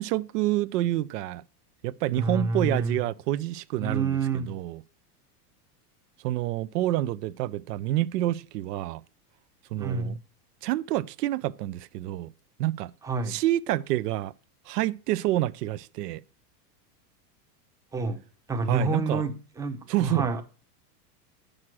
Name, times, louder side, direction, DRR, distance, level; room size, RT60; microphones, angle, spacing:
voice 1, 0.0-1.4 1.8-4.8 6.2-9.0 9.7-10.2 10.6-12.3 12.6-12.9 13.3-14.3 14.7-16.2 18.7-19.2 19.9-20.3, right 15 dB, 80° right, 0.7 m, -28 dB
voice 2, 2.1-3.0 3.8-4.5 9.8-10.2 13.0-13.4 17.9-18.2 18.5-20.4, right 3 dB, 5° right, 0.6 m, -28 dB
8.7 x 6.5 x 6.1 m
supercardioid pair, 145°, 47 cm